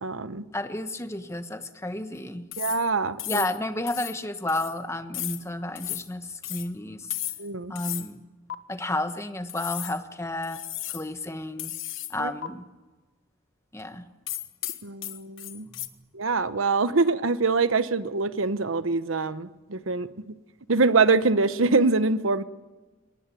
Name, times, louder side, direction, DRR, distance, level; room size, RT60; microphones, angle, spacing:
voice 1, 0.0-0.4 2.6-3.4 7.4-7.7 12.2-12.3 14.8-15.7 16.1-20.3 20.7-22.4, right 4 dB, 80° right, 13 dB, 1.0 m, -24 dB
voice 2, 0.5-2.5 3.2-7.1 7.7-8.2 8.7-10.6 10.9-11.7 12.1-12.6 13.7-14.1 15.7-15.9, left 1 dB, 15° left, 8 dB, 1.3 m, -32 dB
sound 1, 2.5-2.9 3.2-3.6 3.9-4.2 4.5-4.8 5.1-5.4 5.8-6.1 6.4-6.7 7.1-7.5 7.8-8.1 8.5-8.6 9.5-10.0 10.4-11.1 11.6-12.2 12.4-12.5 14.3-15.9, left 14 dB, 70° left, 1.4 m, -34 dB
22.5 x 20.0 x 9.2 m, 1.2 s
head